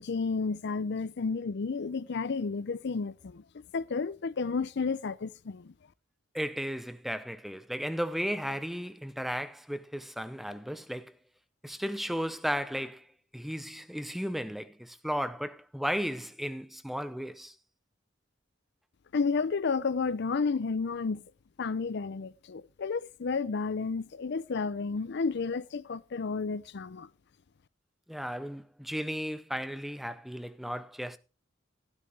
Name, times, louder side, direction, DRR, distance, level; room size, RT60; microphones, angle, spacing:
voice 1, 0.0-3.4 3.7-5.7 19.1-21.2 21.6-27.1, left 4 dB, 60° left, 0.5 m, -31 dB
voice 2, 6.3-11.2 11.6-13.0 13.3-17.5 28.1-31.2, equal, ahead, 0.6 m, -35 dB
12.5 x 12.0 x 3.3 m
head